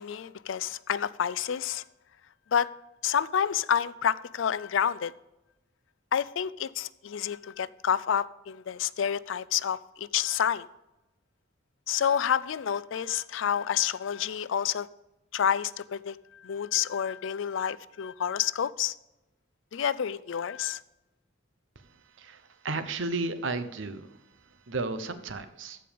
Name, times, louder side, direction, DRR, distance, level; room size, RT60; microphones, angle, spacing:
voice 1, 0.0-1.8 2.5-2.7 3.0-5.1 6.1-10.7 11.9-14.9 15.3-18.9 19.7-20.8, left 8 dB, 70° left, 0.4 m, -29 dB
voice 2, 22.2-24.1 24.7-25.8, right 3 dB, 70° right, 0.9 m, -33 dB
14.5 x 5.1 x 5.2 m
head